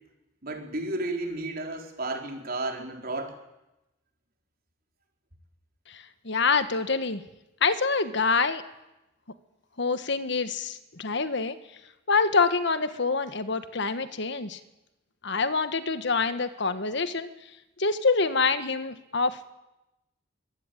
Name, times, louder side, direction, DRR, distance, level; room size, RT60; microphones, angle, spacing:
voice 1, 0.4-3.4, right 2 dB, 50° right, 3 dB, 4.4 m, -32 dB
voice 2, 5.9-7.2 7.6-8.6 9.8-11.6 12.1-14.6 15.2-17.3 17.8-19.5, left 4 dB, 65° left, 11 dB, 1.5 m, -26 dB
24.0 x 18.5 x 9.2 m, 0.96 s
head